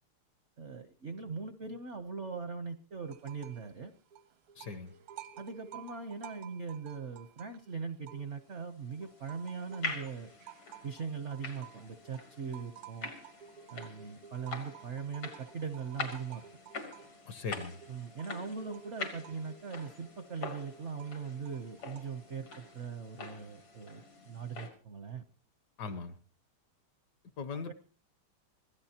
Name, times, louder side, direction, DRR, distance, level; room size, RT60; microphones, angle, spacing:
voice 1, 0.6-3.9 5.4-10.3 10.8-13.1 13.7-16.4 17.9-25.2 27.5-27.7, right 5 dB, 60° right, 0.7 m, -40 dB
sound 1, 3.1-3.7 4.0-8.6 9.0-22.8, right 10 dB, 90° right, 2.0 m, -53 dB
voice 2, 4.6-4.9 17.3-17.8 25.8-26.2 27.4-27.7, left 4 dB, 60° left, 1.3 m, -39 dB
sound 2, 8.7-24.7, left 4 dB, 80° left, 3.7 m, -45 dB
24.5 x 16.5 x 2.9 m
omnidirectional pair, 2.4 m